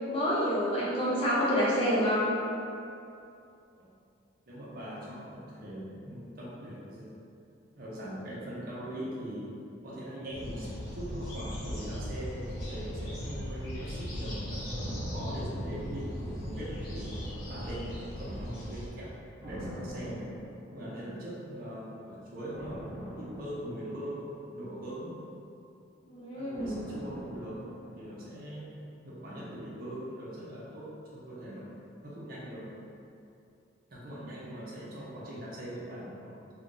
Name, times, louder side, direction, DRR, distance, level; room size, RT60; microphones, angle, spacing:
voice 1, 0.1-2.3 26.1-26.8, equal, 30° left, -8 dB, 0.5 m, -28 dB
voice 2, 4.5-7.2 7.8-9.5 9.8-14.6 15.1-17.2 17.5-20.3 20.7-25.1 26.3-27.6 27.9-28.8 29.0-31.7 32.0-32.7 33.9-36.3, equal, 50° right, -7 dB, 0.6 m, -41 dB
sound 1, 10.3-18.9, equal, 50° left, 0.9 m, -38 dB
sound 2, 14.7-16.6 17.1-18.3 19.4-21.1 22.5-24.9 26.5-28.7 29.0-29.1, equal, 20° right, 0.9 m, -44 dB
2.5 x 2.3 x 3.7 m, 2.6 s
head